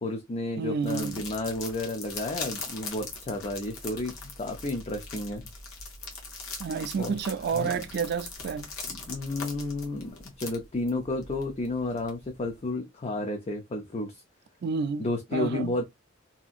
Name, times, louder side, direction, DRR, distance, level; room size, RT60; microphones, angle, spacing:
voice 1, 0.0-5.4 7.0-7.1 7.5-7.8 8.9-14.2 15.0-15.8, left 2 dB, 30° left, 0.4 m, -32 dB
voice 2, 0.6-1.3 6.6-8.7 14.6-15.7, right 5 dB, 50° right, 0.4 m, -30 dB
sound 1, 0.8-12.5, left 4 dB, 90° left, 1.0 m, -41 dB
2.8 x 2.5 x 2.4 m
head